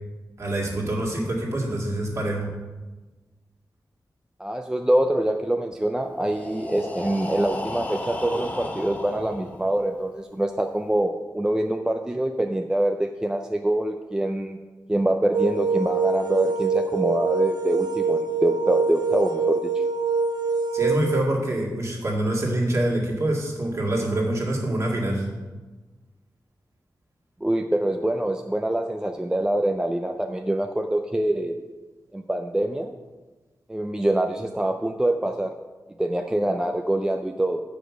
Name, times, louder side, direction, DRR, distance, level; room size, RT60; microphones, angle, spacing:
voice 1, 0.4-2.5 20.7-25.3, right 1 dB, 45° right, -2 dB, 1.9 m, -25 dB
voice 2, 4.4-14.6 14.9-19.8 27.4-31.6 32.1-32.9 33.7-35.5 36.0-37.6, right 1 dB, 10° right, 5 dB, 0.4 m, -25 dB
Breathing, 6.1-10.0, left 1 dB, 25° left, 0.9 m, -34 dB
sound 1, 15.3-21.2, right 4 dB, 85° right, 0.7 m, -24 dB
7.9 x 5.1 x 6.0 m, 1.2 s
wide cardioid pair, 125°, 7 cm